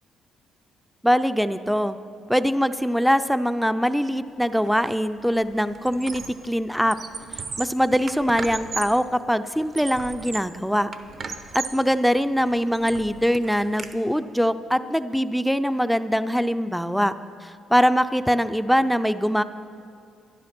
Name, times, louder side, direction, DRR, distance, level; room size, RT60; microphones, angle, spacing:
voice 1, 1.0-2.0 2.3-7.0 7.3-10.9 11.5-17.1 17.4-19.4, equal, ahead, 11 dB, 0.4 m, -22 dB
Squeak, 4.6-4.9 5.3-6.5 6.8-9.0 9.5-10.6 10.9-11.9 12.4-13.9, right 4 dB, 50° right, 1.0 m, -36 dB
13.0 x 11.0 x 6.0 m, 2.4 s
cardioid pair, 90°, 0 cm